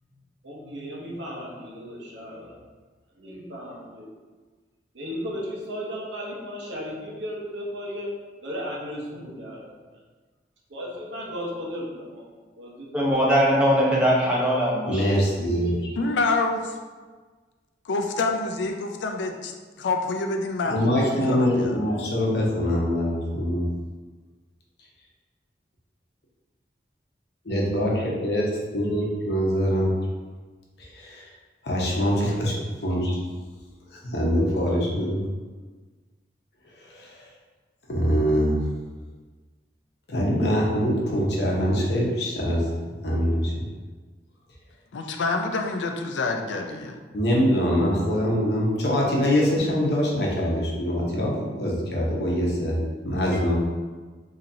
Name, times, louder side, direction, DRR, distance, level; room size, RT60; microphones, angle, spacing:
voice 1, 0.4-2.5 3.2-4.1 4.9-8.1 8.4-9.6 10.7-12.2 12.6-12.9, equal, 85° right, -3 dB, 0.9 m, -35 dB
voice 2, 12.9-15.0, equal, 5° right, -7 dB, 0.8 m, -21 dB
voice 3, 14.9-15.9 20.7-23.6 27.4-29.9 30.8-31.3 31.6-32.5 32.8-33.2 33.9-35.2 36.9-37.2 37.9-38.7 40.1-42.6 43.0-43.7 47.1-52.8 53.0-53.5, equal, 65° left, -3 dB, 0.8 m, -24 dB
voice 4, 16.0-16.8 17.9-21.8 44.9-47.0, left 3 dB, 85° left, 4 dB, 0.4 m, -27 dB
4.1 x 2.8 x 2.6 m, 1.4 s
head